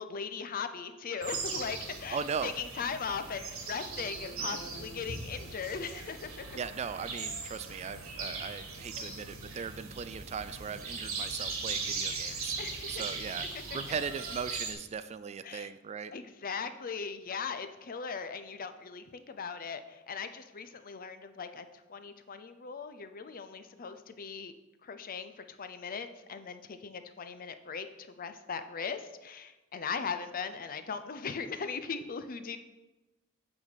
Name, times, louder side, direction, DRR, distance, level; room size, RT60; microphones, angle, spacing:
voice 1, 0.0-6.5 9.0-9.1 12.6-13.0 15.4-15.7 16.1-24.5 24.8-32.6, left 5 dB, 45° left, 10 dB, 0.6 m, -39 dB
sound 1, 1.2-14.7, right 4 dB, 85° right, 1.6 m, -39 dB
voice 2, 2.1-2.5 6.5-12.6 12.9-13.5 13.7-16.1, right 6 dB, 30° right, 13 dB, 0.3 m, -38 dB
8.8 x 4.1 x 6.2 m, 1.1 s
head